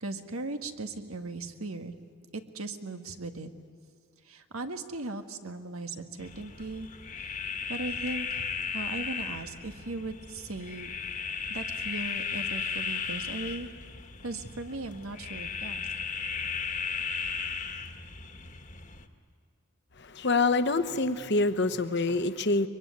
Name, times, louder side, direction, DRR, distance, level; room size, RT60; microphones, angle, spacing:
voice 1, 0.0-1.9 2.5-3.5 4.3-6.9 7.1-8.5 8.7-10.9 11.5-13.7 14.2-15.9, right 2 dB, 85° right, 7 dB, 1.7 m, -38 dB
sound 1, 6.2-19.1, left 5 dB, 35° left, 1.5 m, -36 dB
voice 2, 20.0-22.7, left 3 dB, 55° left, 11 dB, 1.1 m, -26 dB
23.0 x 23.0 x 9.6 m, 2.3 s
head